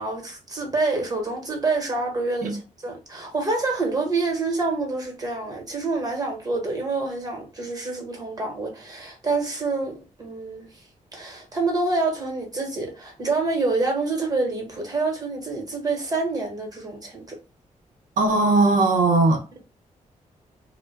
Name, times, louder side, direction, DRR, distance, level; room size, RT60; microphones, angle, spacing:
voice 1, 0.0-10.8 11.1-17.4, right 3 dB, 30° right, 1.1 m, -27 dB
voice 2, 18.2-19.6, right 2 dB, 80° right, 0.8 m, -19 dB
2.2 x 2.1 x 3.3 m
cardioid pair, 80°, 14 cm